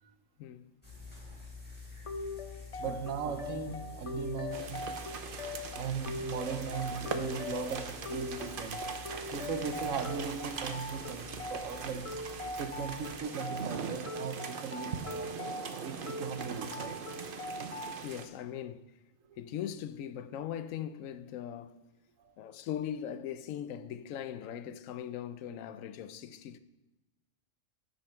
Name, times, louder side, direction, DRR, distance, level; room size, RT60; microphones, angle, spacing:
voice 1, 0.4-0.7 2.7-3.0 17.8-18.9 19.4-21.8 22.4-26.6, left 10 dB, 80° left, 1.0 m, -40 dB
sound 1, 0.8-13.2, left 3 dB, 5° left, 3.9 m, -49 dB
sound 2, 2.1-18.0, left 2 dB, 45° left, 0.5 m, -41 dB
voice 2, 2.8-4.9 5.7-12.2 12.6-15.4 15.8-17.0 22.2-22.3, right 6 dB, 80° right, 1.2 m, -38 dB
sound 3, 4.5-18.3, right 5 dB, 50° right, 0.8 m, -42 dB
15.5 x 5.6 x 4.4 m
omnidirectional pair, 1.4 m